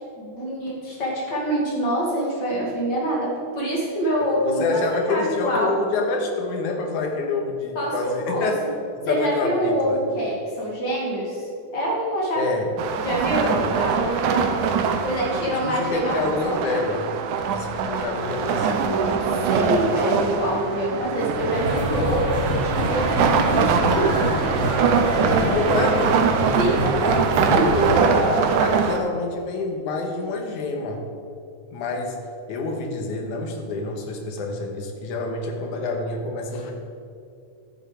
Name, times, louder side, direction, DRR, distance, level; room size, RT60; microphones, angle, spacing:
voice 1, 0.1-5.7 7.7-8.7 9.1-12.5 13.0-14.7 15.0-16.2 16.4-16.6 17.9-24.3 26.6-28.1, right 1 dB, 40° left, -4 dB, 2.6 m, -26 dB
voice 2, 4.2-8.6 9.0-10.0 12.4-12.7 13.4-13.7 15.6-17.1 17.5-18.7 25.2-26.3 28.0-31.0 31.7-32.2 32.5-36.7, left 3 dB, 75° left, 2 dB, 2.6 m, -27 dB
sound 1, 12.8-29.0, right 6 dB, 85° right, 2.2 m, -23 dB
sound 2, 21.5-28.0, equal, 25° right, 2.5 m, -26 dB
12.0 x 7.2 x 5.0 m, 2.5 s
omnidirectional pair, 3.6 m